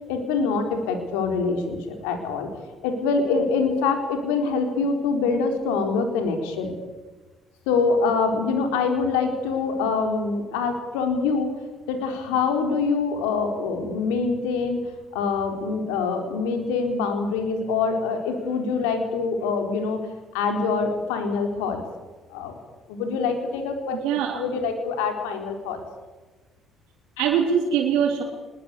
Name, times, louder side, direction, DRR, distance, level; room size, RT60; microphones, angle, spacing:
voice 1, 0.1-2.5 2.8-6.7 7.7-11.5 11.9-14.8 15.1-20.0 20.3-21.8 22.3-22.6 22.9-24.0 24.3-25.8, left 4 dB, 85° left, 5 dB, 4.2 m, -25 dB
voice 2, 23.9-24.4 27.2-28.2, right 7 dB, 75° right, -2 dB, 3.5 m, -22 dB
25.5 x 21.0 x 8.4 m, 1.2 s
hypercardioid pair, 55°, 0 cm